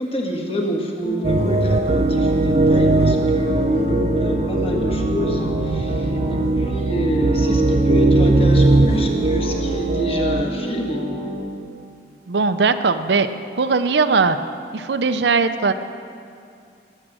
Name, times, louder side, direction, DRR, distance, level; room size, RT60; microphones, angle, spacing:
voice 1, 0.0-11.0, equal, 35° left, 0 dB, 1.6 m, -27 dB
sound 1, 1.0-11.4, left 1 dB, 50° left, 2.6 m, -29 dB
sound 2, 1.2-10.4, right 2 dB, 35° right, 0.3 m, -19 dB
voice 2, 12.3-13.3 13.6-14.4 14.7-15.7, right 4 dB, 80° right, 10 dB, 0.6 m, -19 dB
20.0 x 7.5 x 6.2 m, 2.4 s
head